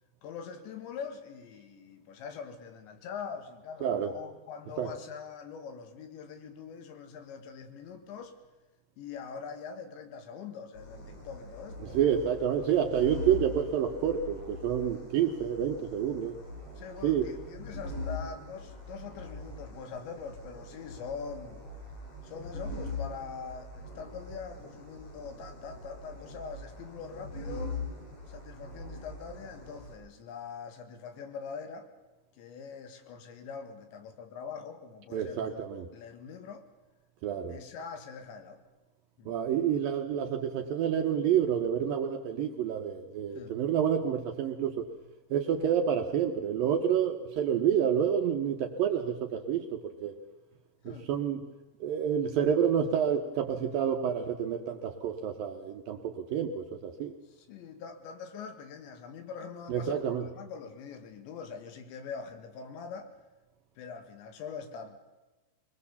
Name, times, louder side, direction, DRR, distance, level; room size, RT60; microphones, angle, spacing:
voice 1, 0.2-8.4 9.0-12.0 16.8-21.6 22.2-27.8 28.3-31.9 32.3-36.7 37.5-38.6 39.2-39.3 43.3-43.6 50.8-51.1 57.3-63.2 63.8-65.0, left 6 dB, 80° left, 7 dB, 4.0 m, -43 dB
sound 1, 10.8-29.9, left 2 dB, 45° left, 6.8 m, -42 dB
voice 2, 11.9-16.3 17.0-17.3 35.1-35.9 37.2-37.6 39.3-44.9 45.3-49.6 50.0-50.1 50.9-51.4 51.8-57.1 59.7-60.2, right 8 dB, 75° right, 5 dB, 2.2 m, -28 dB
23.0 x 20.5 x 7.0 m, 1.2 s
omnidirectional pair, 5.1 m